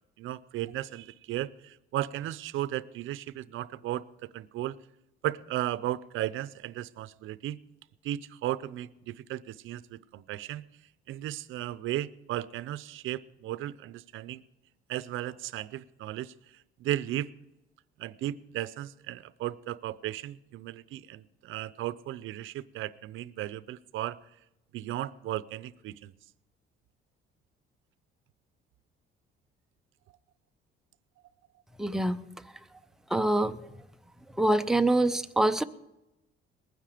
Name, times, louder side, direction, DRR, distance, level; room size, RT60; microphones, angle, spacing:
voice 1, 0.2-4.8 5.2-7.6 8.0-10.6 11.1-14.4 14.9-17.3 18.0-24.2 24.7-26.1, right 13 dB, 70° right, 16 dB, 0.6 m, -35 dB
voice 2, 31.8-32.3 33.1-33.6 34.4-35.6, right 1 dB, ahead, 8 dB, 0.4 m, -25 dB
21.0 x 9.5 x 5.0 m, 0.93 s
cardioid pair, 155°, 21 cm